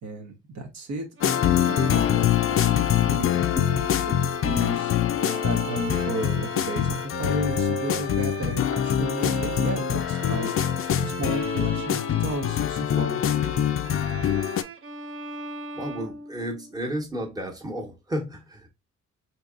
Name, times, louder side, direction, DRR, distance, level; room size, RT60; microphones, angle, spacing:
voice 1, 0.0-3.9 4.4-5.0 5.4-10.5 10.8-13.2, right 1 dB, 65° right, 1.0 m, -34 dB
sound 1, 1.2-14.6, left 10 dB, 45° left, 0.4 m, -24 dB
Bowed string instrument, 1.2-16.9, right 5 dB, 45° right, 0.7 m, -38 dB
voice 2, 15.7-18.7, equal, 10° right, 1.1 m, -33 dB
4.5 x 2.9 x 2.4 m
cardioid pair, 90°, 30 cm